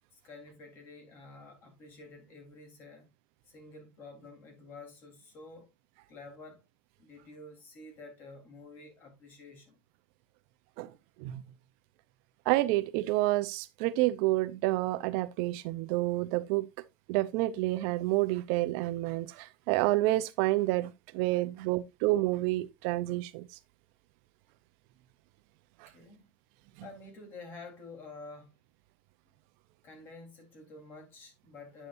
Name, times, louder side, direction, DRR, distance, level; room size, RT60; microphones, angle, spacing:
voice 1, 0.1-3.1 3.5-5.7 6.1-6.6 7.0-9.8 25.9-26.3 26.8-28.6 29.8-31.9, left 3 dB, 40° left, 3.7 m, -49 dB
voice 2, 12.5-16.7 17.1-23.5 25.8-25.9, right 18 dB, 60° right, 0.6 m, -29 dB
9.4 x 7.2 x 2.6 m
supercardioid pair, 135°, 6 cm